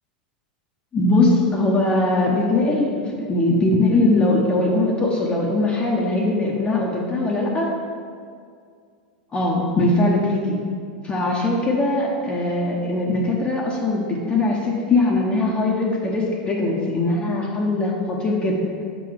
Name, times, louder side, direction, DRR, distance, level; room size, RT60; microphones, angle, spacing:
voice 1, 0.9-7.7 9.3-10.6 11.0-18.7, left 2 dB, 25° left, -3 dB, 0.9 m, -21 dB
6.7 x 3.8 x 5.0 m, 2.2 s
hypercardioid pair, 105°, 5 cm